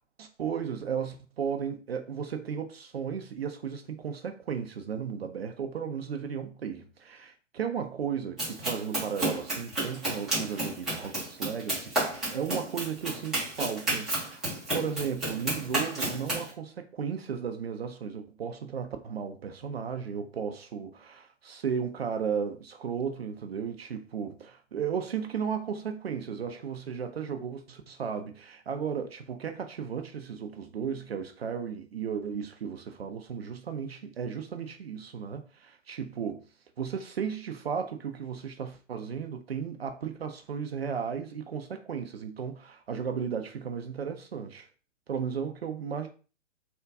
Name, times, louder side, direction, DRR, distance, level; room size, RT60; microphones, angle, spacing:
voice 1, 0.2-14.4 14.7-36.4 36.8-44.7 45.1-46.1, right 7 dB, 55° right, 0.5 m, -35 dB
Run, 8.4-16.5, right 1 dB, ahead, 0.6 m, -32 dB
3.4 x 2.2 x 2.5 m
figure-of-eight pair, 125°, 38 cm